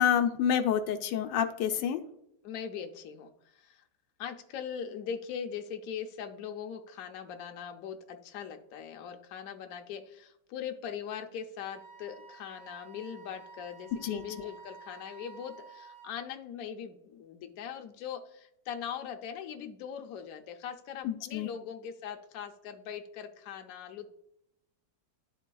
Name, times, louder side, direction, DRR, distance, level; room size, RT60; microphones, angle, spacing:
voice 1, 0.0-2.0 14.0-14.5 21.0-21.5, left 9 dB, 85° left, 6 dB, 1.3 m, -28 dB
voice 2, 2.4-3.8 4.2-24.1, left 8 dB, 65° left, 4 dB, 1.0 m, -41 dB
Wind instrument woodwind instrument, 11.7-16.2, right 5 dB, 40° right, 1.2 m, -52 dB
11.0 x 4.0 x 2.3 m, 0.76 s
omnidirectional pair, 1.9 m